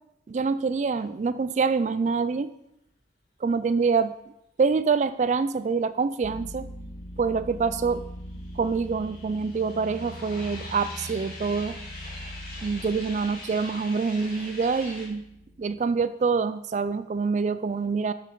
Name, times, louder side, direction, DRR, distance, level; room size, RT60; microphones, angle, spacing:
voice 1, 0.3-2.5 3.4-4.1 4.6-6.7 7.2-8.0 8.6-11.8 12.6-15.2 15.6-18.1, right 5 dB, 40° right, 14 dB, 0.3 m, -26 dB
sound 1, 6.2-15.8, equal, 75° left, 1.5 m, -42 dB
sound 2, 7.9-15.1, left 2 dB, 55° left, 3.4 m, -43 dB
13.0 x 6.3 x 3.9 m, 0.81 s
head